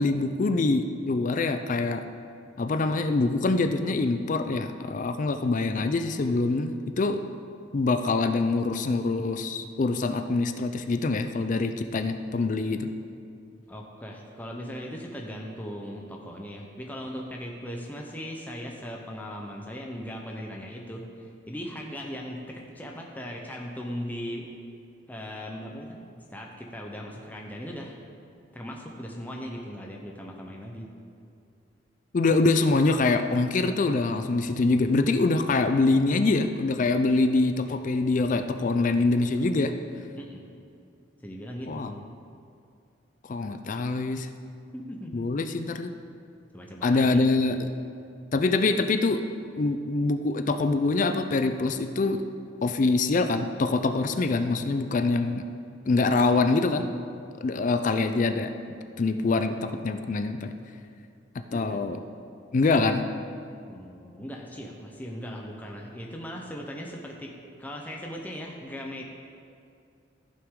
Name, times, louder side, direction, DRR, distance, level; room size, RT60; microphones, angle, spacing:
voice 1, 0.0-2.0 2.6-7.2 7.7-12.9 32.1-39.7 41.7-42.0 43.3-44.3 45.1-45.9 46.8-47.7 48.3-49.2 49.6-52.2 52.6-55.4 55.9-56.9 57.4-58.5 59.0-60.5 61.5-62.0 62.5-63.1, left 3 dB, 40° left, 8 dB, 0.4 m, -24 dB
voice 2, 13.7-24.5 25.1-28.0 28.5-30.9 40.2-40.4 41.2-41.9 44.7-45.3 46.5-47.2 57.5-57.6 61.5-61.8 63.6-69.0, equal, 10° left, 0 dB, 0.7 m, -38 dB
14.0 x 5.9 x 3.7 m, 2.4 s
head